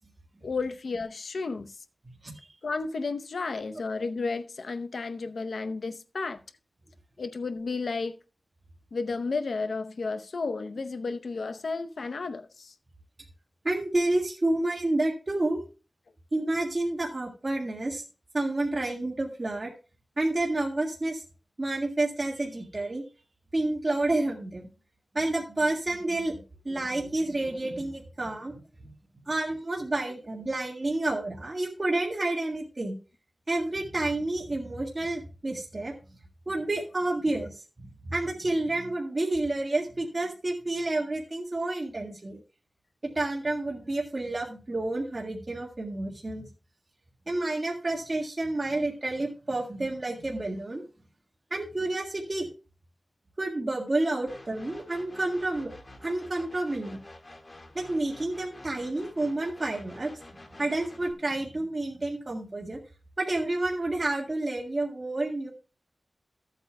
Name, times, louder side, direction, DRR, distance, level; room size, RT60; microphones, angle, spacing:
voice 1, 0.4-1.8 2.6-6.4 7.2-8.2 8.9-12.7 37.4-37.5, left 4 dB, 85° left, 0.6 m, -32 dB
voice 2, 13.6-15.6 16.3-18.0 18.3-19.7 20.2-21.2 21.6-23.0 23.5-24.7 25.1-28.9 29.2-33.0 33.5-35.9 36.4-37.5 37.8-42.4 43.1-46.5 47.3-50.8 51.5-52.5 53.4-55.7 56.0-57.0 57.7-60.1 60.6-62.8 63.2-65.5, right 2 dB, 40° right, 1.7 m, -29 dB
sound 1, 54.3-61.1, left 1 dB, 35° left, 1.7 m, -49 dB
14.5 x 8.2 x 2.2 m
wide cardioid pair, 85°, 0 cm